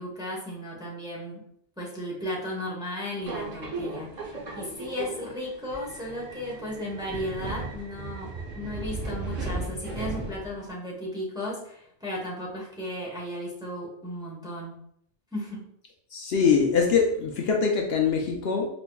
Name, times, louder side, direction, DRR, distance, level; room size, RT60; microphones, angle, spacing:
voice 1, 0.0-1.4 1.8-14.8 15.3-15.6, left 1 dB, 5° right, -4 dB, 0.7 m, -35 dB
Subway metro underground, 3.2-10.7, right 3 dB, 40° right, 0.8 m, -36 dB
voice 2, 16.1-18.7, left 6 dB, 65° left, 1 dB, 0.7 m, -23 dB
4.2 x 3.0 x 2.2 m, 0.69 s
omnidirectional pair, 1.2 m